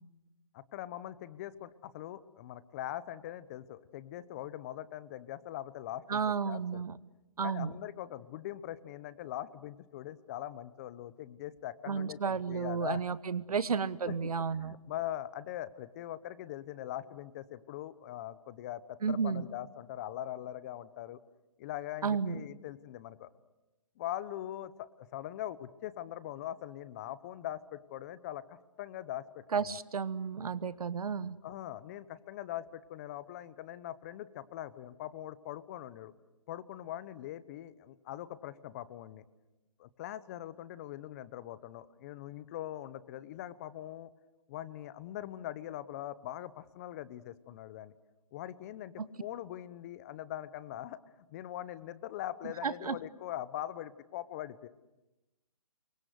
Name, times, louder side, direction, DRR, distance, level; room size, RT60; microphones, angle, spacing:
voice 1, 0.5-6.8 7.4-13.0 14.1-21.2 21.6-23.3 24.0-29.8 31.4-36.1 36.5-39.2 39.8-44.1 44.5-47.9 48.3-48.9 49.2-51.0 51.3-54.7, left 13 dB, 25° left, 16 dB, 0.9 m, -42 dB
voice 2, 6.1-6.9 7.4-7.7 11.9-14.7 19.0-19.4 22.0-22.4 29.5-31.4 49.0-49.1 52.6-53.0, right 6 dB, 70° right, 16 dB, 1.3 m, -32 dB
28.0 x 24.0 x 8.0 m, 1.0 s
hypercardioid pair, 155°, 19 cm